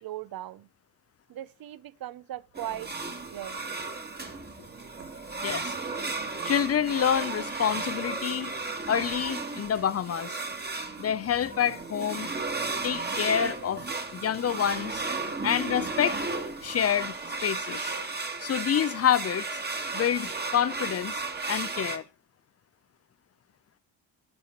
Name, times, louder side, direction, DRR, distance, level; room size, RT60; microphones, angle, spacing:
voice 1, 0.0-0.7 1.3-2.9 3.3-3.7, right 13 dB, 50° right, 0.6 m, -38 dB
sound 1, 2.5-22.0, right 3 dB, 20° right, 1.4 m, -34 dB
voice 2, 5.4-5.7 6.4-8.5 8.9-10.4 11.0-12.3 12.8-13.8 14.1-15.1 15.4-16.2 16.6-17.2 17.4-17.9 18.4-19.5 19.9-21.2 21.5-22.0, left 9 dB, 35° left, 0.4 m, -27 dB
9.6 x 5.6 x 4.3 m
supercardioid pair, 60°, 46 cm